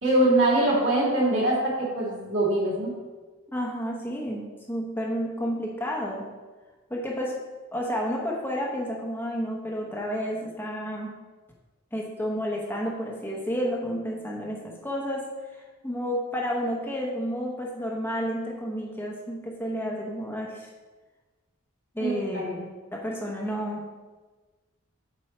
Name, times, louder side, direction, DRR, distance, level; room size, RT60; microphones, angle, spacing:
voice 1, 0.0-2.9 22.0-22.5, right 1 dB, 60° right, -5 dB, 2.5 m, -23 dB
voice 2, 3.5-6.3 6.9-7.3 7.7-11.1 11.9-20.7 21.9-23.8, equal, 10° left, -2 dB, 0.9 m, -31 dB
7.5 x 5.3 x 4.4 m, 1.3 s
head